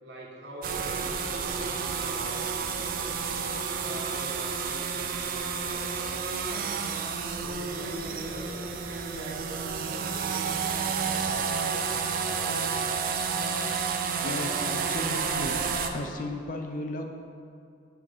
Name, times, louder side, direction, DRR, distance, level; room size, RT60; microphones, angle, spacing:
voice 1, 0.0-3.2 3.8-7.0 7.4-10.9 11.2-12.8, right 1 dB, 80° right, -2 dB, 1.1 m, -43 dB
sound 1, 0.6-15.9, right 5 dB, 50° right, 0.4 m, -30 dB
voice 2, 14.2-15.6 15.9-17.1, left 1 dB, 50° left, 4 dB, 0.5 m, -35 dB
6.1 x 3.3 x 5.2 m, 2.4 s
head